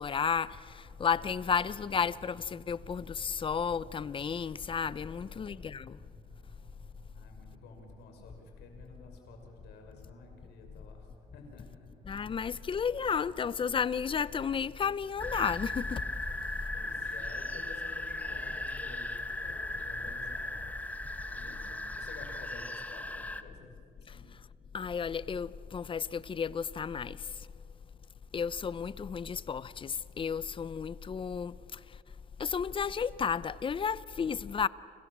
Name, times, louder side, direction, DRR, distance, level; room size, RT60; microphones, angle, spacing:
voice 1, 0.0-6.0 12.1-16.0 24.7-27.4 28.3-32.0 32.4-34.7, left 6 dB, 30° left, 0.7 m, -33 dB
sound 1, 0.6-20.4, right 3 dB, 25° right, 5.1 m, -59 dB
voice 2, 5.1-5.6 7.1-11.9 12.6-12.7 16.3-23.7 24.0-24.2, left 4 dB, 80° left, 6.0 m, -52 dB
sound 2, 15.2-23.4, left 2 dB, 10° left, 1.2 m, -37 dB
29.5 x 26.5 x 7.4 m
cardioid pair, 110°, 17 cm